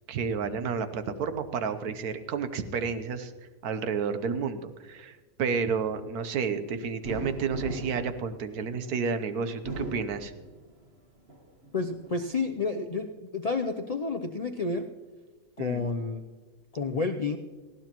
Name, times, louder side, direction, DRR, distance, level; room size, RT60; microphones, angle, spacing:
voice 1, 0.1-3.3 3.6-10.3 15.6-15.9, right 5 dB, 75° right, 10 dB, 1.4 m, -31 dB
sound 1, 7.0-9.0 9.5-10.8 11.3-12.2, right 1 dB, 40° right, 1.8 m, -39 dB
voice 2, 11.7-13.1 13.3-14.9 15.6-16.2 16.7-17.4, left 4 dB, 80° left, 4 dB, 0.3 m, -30 dB
19.0 x 15.5 x 3.0 m, 1.3 s
omnidirectional pair, 1.6 m